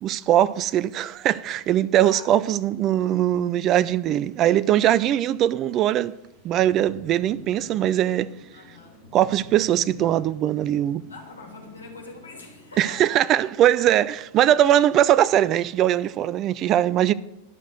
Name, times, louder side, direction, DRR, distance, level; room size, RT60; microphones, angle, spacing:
voice 1, 0.0-6.1 6.4-8.3 9.1-11.0 12.8-17.1, right 12 dB, 35° right, 0.3 m, -21 dB
voice 2, 2.0-2.4 8.5-9.0 11.1-13.4, left 3 dB, 75° left, 2.7 m, -43 dB
sound 1, 5.8-13.9, left 1 dB, 15° right, 3.3 m, -49 dB
11.5 x 6.1 x 7.9 m
figure-of-eight pair, 90°, 0 cm